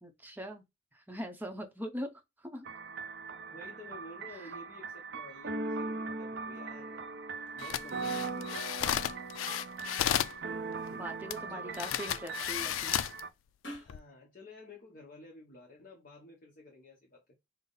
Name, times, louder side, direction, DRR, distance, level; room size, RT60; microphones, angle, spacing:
voice 1, 0.0-0.6 0.9-2.7 4.3-4.5 11.0-13.0, equal, 10° right, 0.7 m, -41 dB
sound 1, 2.7-13.3, right 4 dB, 55° right, 0.5 m, -40 dB
voice 2, 3.5-7.1 7.5-8.8 10.9-11.2 11.5-12.0 13.8-17.2, left 2 dB, 45° left, 0.8 m, -52 dB
sound 2, 5.3-14.1, equal, 60° left, 1.5 m, -57 dB
sound 3, 7.6-10.4 11.3-11.4 11.7-13.2 13.8-14.0, left 11 dB, 90° left, 0.3 m, -33 dB
5.6 x 2.0 x 3.9 m
head